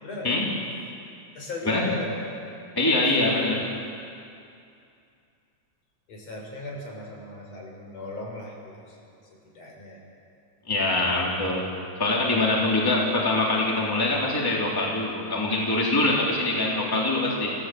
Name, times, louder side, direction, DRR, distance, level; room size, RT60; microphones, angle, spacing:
voice 1, 0.0-0.4 1.4-2.5 3.1-3.9 6.1-9.1 9.4-10.0 16.6-17.4, left 2 dB, 60° left, -1 dB, 5.2 m, -37 dB
voice 2, 2.8-3.6 10.7-11.7 12.0-17.5, left 2 dB, 5° left, -3 dB, 2.8 m, -24 dB
27.0 x 16.0 x 7.7 m, 2.5 s
omnidirectional pair, 3.4 m